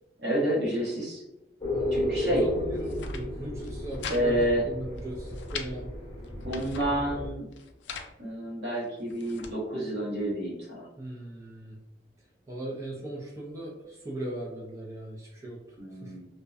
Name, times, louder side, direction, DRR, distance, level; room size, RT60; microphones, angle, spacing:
voice 1, 0.2-1.2 1.9-2.4 4.1-4.6 6.4-7.5 8.2-10.9 15.8-16.3, right 1 dB, 65° right, -4 dB, 0.9 m, -29 dB
sound 1, 1.6-7.3, left 1 dB, 25° left, 0.7 m, -34 dB
voice 2, 1.7-5.9 11.0-11.8 12.5-16.2, right 1 dB, 20° right, -4 dB, 0.4 m, -38 dB
sound 2, 2.7-3.2 3.6-4.2 4.5-4.6 5.0-5.7 6.2-6.9 7.5-8.1 8.8-9.5, left 6 dB, 85° left, 0.3 m, -41 dB
2.5 x 2.1 x 2.3 m, 0.94 s
head